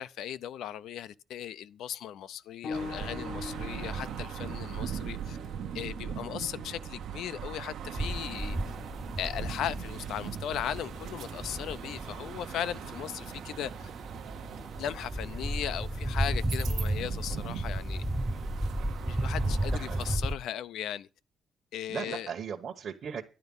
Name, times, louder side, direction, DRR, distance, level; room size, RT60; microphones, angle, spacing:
voice 1, 0.0-5.4 5.7-8.8 9.2-13.9 14.8-18.0 19.0-21.1 21.7-22.3, left 10 dB, 85° left, 0.6 m, -37 dB
sound 1, 2.6-12.9 13.8-13.9 14.7-14.8, left 4 dB, 55° left, 0.9 m, -46 dB
sound 2, 2.7-20.2, right 8 dB, 70° right, 0.8 m, -40 dB
sound 3, 8.0-20.3, right 1 dB, 10° right, 0.6 m, -34 dB
voice 2, 19.7-20.2 21.9-23.2, right 7 dB, 45° right, 1.1 m, -38 dB
11.5 x 11.0 x 5.4 m
cardioid pair, 175°, 0 cm